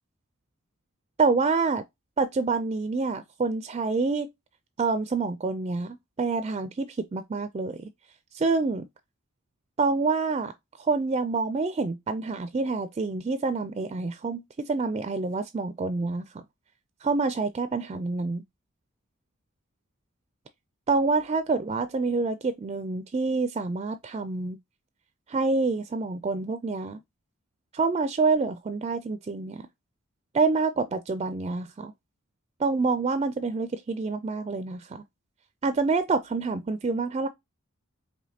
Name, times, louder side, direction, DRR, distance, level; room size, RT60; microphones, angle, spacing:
voice 1, 1.2-1.8 2.2-4.3 4.8-7.9 8.3-8.9 9.8-10.5 10.8-16.4 17.0-18.4 20.9-24.6 25.3-27.0 27.7-29.6 30.3-31.9 32.6-35.0 35.6-37.3, right 4 dB, 30° right, 0.3 m, -27 dB
5.0 x 3.1 x 2.7 m
head